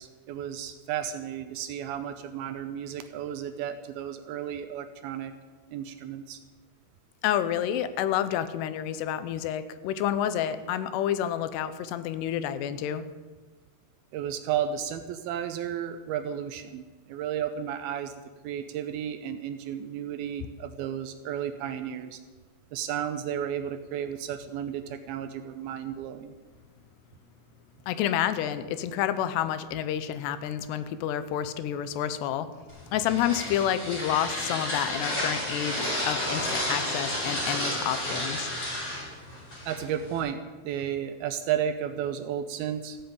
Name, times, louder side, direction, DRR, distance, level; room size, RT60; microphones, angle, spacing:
voice 1, 0.0-5.3 5.7-6.4 14.1-18.1 18.4-22.2 22.7-26.3 39.7-43.0, right 9 dB, 75° right, 9 dB, 2.3 m, -33 dB
voice 2, 7.2-13.0 27.9-32.5 32.9-38.5, left 10 dB, 90° left, 13 dB, 2.8 m, -29 dB
sound 1, 32.7-40.2, left 1 dB, 25° left, 5.0 m, -32 dB
15.0 x 8.0 x 8.6 m, 1.3 s
omnidirectional pair, 4.8 m